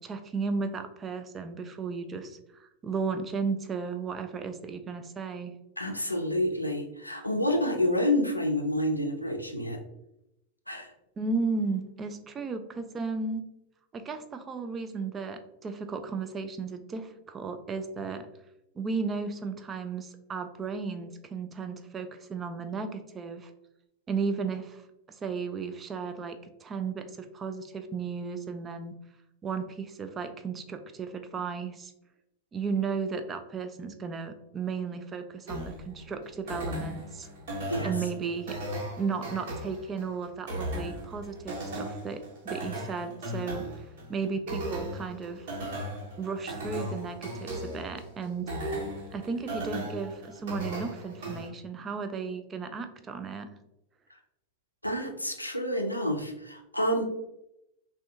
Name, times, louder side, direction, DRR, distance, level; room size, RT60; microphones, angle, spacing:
voice 1, 0.0-5.5 11.2-13.5 13.9-18.3 18.8-23.5 24.1-24.8 25.1-28.9 29.4-31.9 32.5-37.3 37.8-38.6 39.0-43.7 44.1-45.5 46.2-48.5 49.1-53.5, right 5 dB, 20° right, 8 dB, 0.3 m, -34 dB
voice 2, 5.8-9.8 10.7-10.9 37.7-37.9 54.8-57.0, left 1 dB, 85° left, 3 dB, 0.4 m, -28 dB
sound 1, 35.5-51.5, right 1 dB, 55° right, 1.0 m, -37 dB
3.4 x 2.2 x 2.6 m, 0.86 s
figure-of-eight pair, 90°, 0 cm